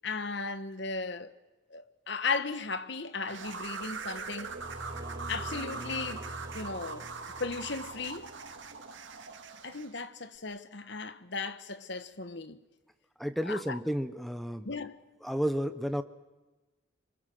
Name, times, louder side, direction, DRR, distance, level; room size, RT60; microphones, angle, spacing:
voice 1, 0.0-1.3 1.7-4.5 5.3-6.2 6.5-7.1 7.4-8.3 9.6-12.6 13.5-13.8 14.6-15.0, left 4 dB, 55° left, 1.3 m, -36 dB
sound 1, 3.3-9.9, right 4 dB, 65° right, 2.2 m, -41 dB
sound 2, 4.3-8.6, right 1 dB, 20° right, 2.3 m, -45 dB
voice 2, 13.2-14.7 15.2-16.0, equal, ahead, 1.1 m, -32 dB
26.5 x 25.0 x 7.9 m
head